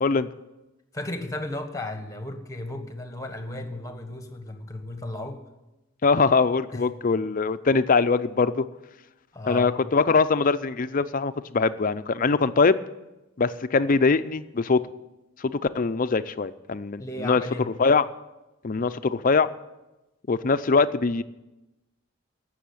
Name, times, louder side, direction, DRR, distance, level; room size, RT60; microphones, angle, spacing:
voice 1, 0.9-5.4 6.7-6.9 9.3-9.8 17.0-17.7, left 1 dB, 15° left, 6 dB, 1.2 m, -34 dB
voice 2, 6.0-8.6 9.5-12.8 13.4-14.8 15.4-17.4 17.8-18.0 18.6-19.5 20.3-21.2, left 4 dB, 40° left, 12 dB, 0.5 m, -22 dB
15.5 x 6.4 x 8.6 m, 1.0 s
head